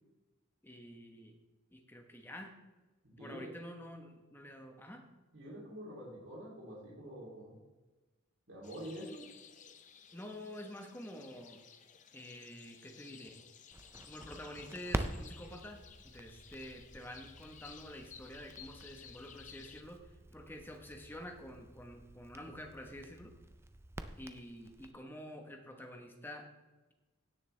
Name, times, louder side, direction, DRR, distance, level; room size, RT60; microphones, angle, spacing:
voice 1, 0.6-1.4 1.7-2.6 3.1-5.0 10.1-11.6 12.1-13.4 14.1-20.1 20.3-23.4 24.2-26.5, left 1 dB, 10° left, 4 dB, 1.0 m, -48 dB
voice 2, 3.0-3.5 5.3-7.6 8.5-9.2, equal, 65° right, -5 dB, 3.1 m, -46 dB
sound 1, 8.6-19.8, left 7 dB, 35° left, 0.6 m, -56 dB
Crackle, 13.7-24.9, right 1 dB, 10° right, 0.4 m, -46 dB
16.5 x 6.7 x 3.3 m, 1.2 s
head